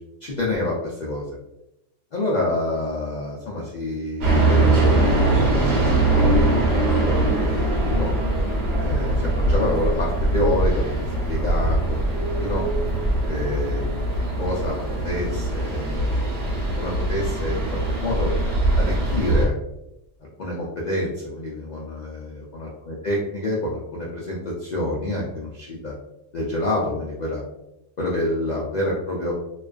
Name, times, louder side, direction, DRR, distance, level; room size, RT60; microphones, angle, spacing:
voice 1, 0.2-1.2 2.1-8.1 8.8-12.6 13.3-13.9 14.4-14.8 15.0-18.3 18.8-19.5 20.4-25.9 26.3-27.4 28.0-29.3, left 1 dB, 80° left, -4 dB, 0.4 m, -28 dB
sound 1, 4.2-19.5, right 2 dB, 60° right, 0.9 m, -22 dB
2.3 x 2.3 x 2.3 m, 0.86 s
omnidirectional pair, 1.3 m